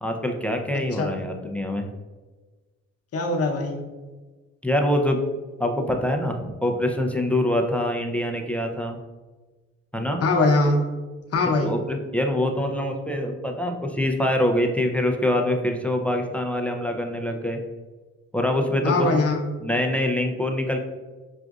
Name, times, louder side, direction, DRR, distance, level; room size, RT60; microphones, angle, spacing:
voice 1, 0.0-1.9 4.6-5.2 5.6-9.0 9.9-10.2 11.6-17.6 18.3-19.3 19.6-20.8, left 1 dB, 5° left, 3 dB, 0.4 m, -24 dB
voice 2, 3.1-3.8 10.2-10.8 11.3-11.7 18.8-19.5, left 2 dB, 50° left, 2 dB, 0.8 m, -22 dB
6.0 x 2.5 x 2.3 m, 1.3 s
cardioid pair, 90°, 30 cm